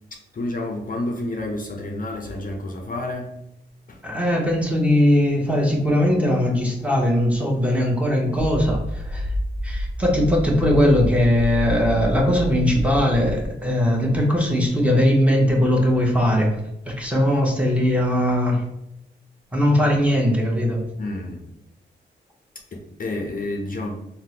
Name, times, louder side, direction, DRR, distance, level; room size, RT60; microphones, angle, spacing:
voice 1, 0.1-3.4 3.9-4.0 21.0-21.4 22.7-24.0, left 2 dB, 45° left, 0.5 m, -30 dB
voice 2, 4.0-9.3 9.6-16.6 16.9-18.6 19.5-20.8, left 1 dB, 5° right, 0.9 m, -20 dB
sound 1, 8.4-13.5, equal, 65° right, 0.5 m, -29 dB
3.4 x 2.1 x 2.8 m
cardioid pair, 55°, 19 cm